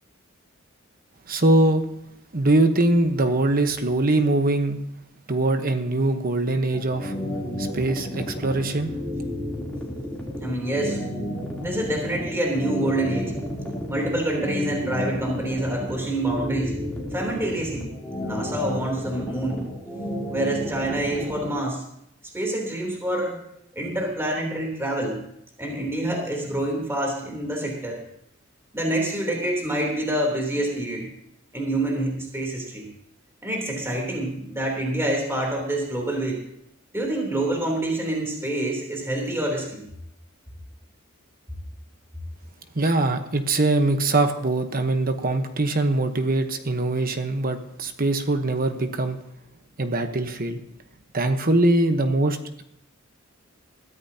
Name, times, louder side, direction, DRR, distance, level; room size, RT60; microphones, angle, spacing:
voice 1, 1.3-1.8 2.3-4.8 5.3-7.1 7.6-8.9 42.7-49.2 49.8-50.6 51.1-52.6, right 2 dB, 45° right, 7 dB, 1.1 m, -22 dB
sound 1, 6.7-21.5, left 1 dB, 5° left, 3.1 m, -31 dB
voice 2, 10.4-11.0 11.5-13.4 13.9-16.8 17.1-17.9 18.2-19.7 20.3-21.8 22.3-23.4 23.7-25.2 25.6-28.0 28.7-31.1 31.5-32.9 33.4-36.4 36.9-39.8, right 1 dB, 10° right, 0 dB, 3.3 m, -27 dB
21.5 x 13.5 x 2.8 m, 0.77 s
head